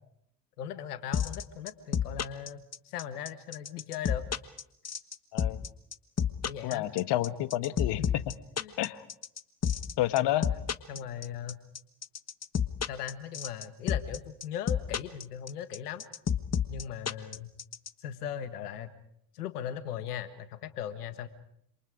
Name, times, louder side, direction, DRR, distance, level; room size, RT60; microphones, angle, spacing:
voice 1, 0.6-4.3 6.4-6.8 8.0-8.1 8.6-8.7 10.5-11.6 12.9-16.0 16.7-17.5 18.0-18.9 19.3-21.3, left 9 dB, 90° left, 11 dB, 1.7 m, -38 dB
sound 1, 1.1-17.9, left 8 dB, 35° left, 1.4 m, -29 dB
voice 2, 5.3-5.6 6.6-8.0 8.8-9.0 10.0-10.5, left 14 dB, 65° left, 12 dB, 1.5 m, -29 dB
27.5 x 27.0 x 5.0 m, 0.72 s
hypercardioid pair, 55°, 45 cm